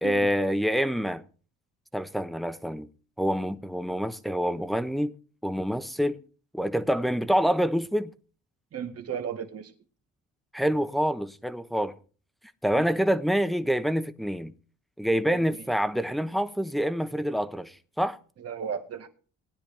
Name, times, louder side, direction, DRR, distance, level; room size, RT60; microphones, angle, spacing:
voice 1, 0.0-1.2 1.9-2.9 3.2-5.1 5.4-6.2 6.5-8.1 10.5-11.9 12.6-14.5 15.0-18.2, equal, ahead, 0.9 m, -26 dB
voice 2, 8.7-9.7 12.8-12.9 18.4-19.1, right 7 dB, 55° right, 1.8 m, -34 dB
18.0 x 10.0 x 3.3 m
cardioid pair, 90°, 30 cm